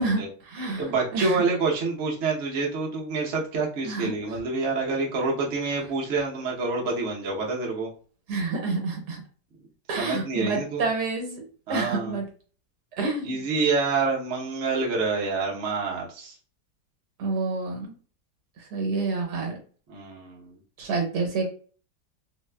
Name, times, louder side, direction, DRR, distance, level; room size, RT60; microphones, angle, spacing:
voice 1, 0.0-0.8 1.1-1.4 3.8-4.1 8.3-9.2 9.9-12.2 13.0-13.4 17.2-17.9 18.7-19.6 20.8-21.4, right 3 dB, 75° right, 1 dB, 1.4 m, -28 dB
voice 2, 0.8-7.9 10.0-10.9 11.7-12.2 13.2-16.3 19.9-20.5, right 4 dB, 50° right, -2 dB, 1.0 m, -27 dB
4.0 x 2.2 x 2.2 m, 0.41 s
omnidirectional pair, 1.8 m